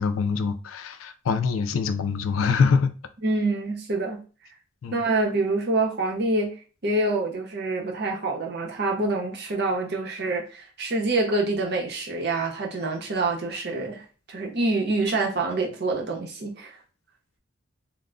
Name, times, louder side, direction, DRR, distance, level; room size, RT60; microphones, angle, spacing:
voice 1, 0.0-2.9 4.8-5.0, left 5 dB, 90° left, 0.4 m, -24 dB
voice 2, 3.2-4.2 4.9-6.5 6.8-14.0 14.3-16.7, right 2 dB, 55° right, 0.7 m, -26 dB
2.1 x 2.1 x 3.6 m
head